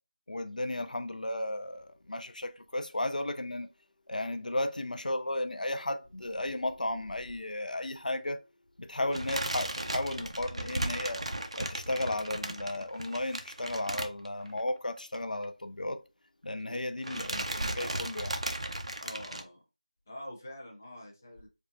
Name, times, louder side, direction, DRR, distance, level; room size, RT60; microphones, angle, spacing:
voice 1, 0.3-3.7 4.1-8.4 8.8-11.2 11.6-16.0 16.4-18.3, left 1 dB, 80° left, 0.5 m, -34 dB
sound 1, 9.1-14.7 15.0-15.2 15.4-15.5 16.5-16.8 17.0-19.4, right 1 dB, 50° right, 0.5 m, -36 dB
voice 2, 19.0-19.6 20.1-21.5, left 1 dB, 20° left, 0.5 m, -45 dB
4.6 x 2.4 x 2.6 m
figure-of-eight pair, 175°, 4 cm